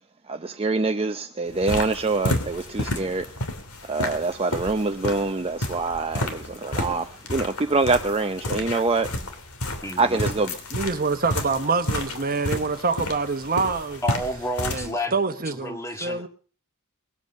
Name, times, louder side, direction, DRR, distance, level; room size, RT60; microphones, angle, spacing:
voice 1, 0.3-3.4 3.8-9.2 10.0-10.6, right 3 dB, 25° right, 0.6 m, -25 dB
sound 1, 1.5-14.9, left 1 dB, 90° left, 2.9 m, -31 dB
voice 2, 9.8-10.3 14.0-15.2 15.5-16.3, equal, 15° left, 1.8 m, -30 dB
voice 3, 10.7-14.0 14.7-16.3, right 4 dB, 45° right, 1.1 m, -26 dB
21.0 x 8.1 x 6.5 m
head